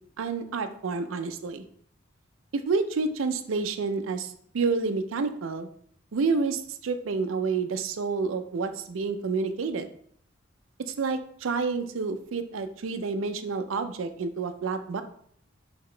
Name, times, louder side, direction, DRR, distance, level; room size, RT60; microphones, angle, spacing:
voice 1, 0.2-1.6 2.7-5.7 6.1-9.9 10.8-15.0, right 4 dB, 85° right, 9 dB, 0.5 m, -29 dB
5.8 x 2.8 x 3.2 m, 0.62 s
head